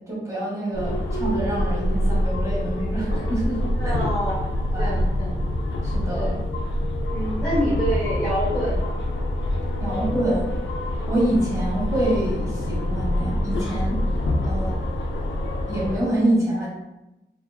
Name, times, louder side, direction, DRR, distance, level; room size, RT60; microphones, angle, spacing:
voice 1, 0.1-3.6 3.8-3.9 4.7-4.9 5.8-6.4 9.8-10.5 11.1-14.0 14.4-14.8 15.7-16.7, right 1 dB, 15° right, -6 dB, 1.1 m, -26 dB
sound 1, 0.7-16.0, left 1 dB, 75° left, 0.4 m, -25 dB
voice 2, 3.7-4.4 4.8-5.4 6.2-6.3 7.1-9.0, equal, 5° left, -9 dB, 0.8 m, -27 dB
2.7 x 2.4 x 2.2 m, 0.94 s
wide cardioid pair, 120°, 19 cm